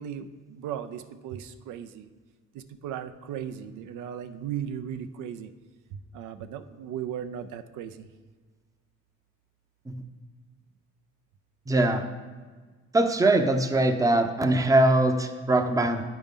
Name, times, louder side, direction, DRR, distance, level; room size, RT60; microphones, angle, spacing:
voice 1, 0.0-2.1 2.5-5.5 5.9-8.1, right 9 dB, 85° right, 9 dB, 0.5 m, -37 dB
voice 2, 11.7-12.0 12.9-16.0, right 2 dB, 10° right, 7 dB, 0.6 m, -22 dB
8.8 x 5.3 x 3.6 m, 1.4 s
cardioid pair, 90°, 30 cm